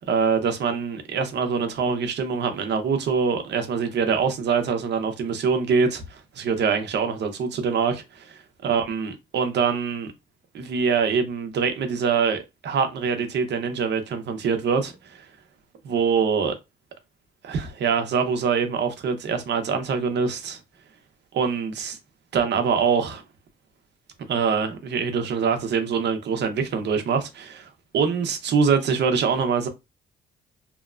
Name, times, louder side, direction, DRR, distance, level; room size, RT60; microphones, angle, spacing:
voice 1, 0.0-10.1 10.5-15.2 15.8-16.6 17.4-20.6 21.3-22.0 22.3-23.2 24.3-29.7, right 6 dB, 60° right, 0.7 m, -24 dB
2.9 x 2.1 x 2.4 m
cardioid pair, 90°, 20 cm